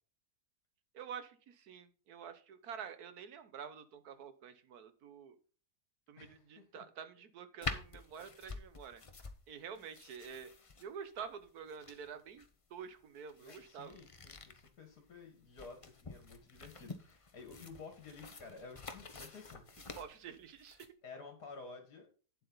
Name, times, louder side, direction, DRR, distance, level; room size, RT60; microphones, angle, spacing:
voice 1, 0.9-5.4 6.1-9.0 9.5-10.5 10.8-14.0 19.9-20.9, right 7 dB, 70° right, 11 dB, 1.5 m, -48 dB
voice 2, 6.2-6.8 9.7-9.9 13.4-19.9 21.0-22.1, left 4 dB, 65° left, 4 dB, 2.2 m, -52 dB
sound 1, 7.6-20.9, left 4 dB, 30° left, 0.7 m, -48 dB
9.1 x 7.8 x 3.9 m, 0.39 s
omnidirectional pair, 1.8 m